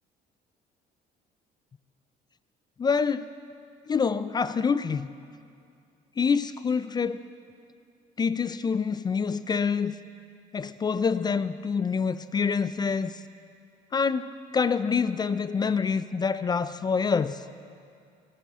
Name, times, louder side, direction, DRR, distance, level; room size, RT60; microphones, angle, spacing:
voice 1, 2.8-3.3 3.9-5.1 6.2-7.2 8.2-9.9 10.5-13.1 13.9-17.4, left 5 dB, 25° left, 13 dB, 0.4 m, -26 dB
19.5 x 13.5 x 3.7 m, 2.4 s
cardioid pair, 110°, 17 cm